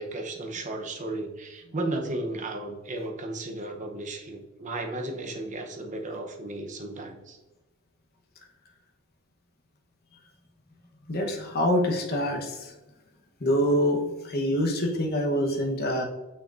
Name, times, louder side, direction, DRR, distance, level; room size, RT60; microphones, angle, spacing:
voice 1, 0.0-7.4, right 2 dB, 35° right, 3 dB, 0.8 m, -34 dB
voice 2, 11.1-12.7 13.4-16.0, equal, 45° left, 2 dB, 1.1 m, -25 dB
6.3 x 6.0 x 2.5 m, 1.1 s
head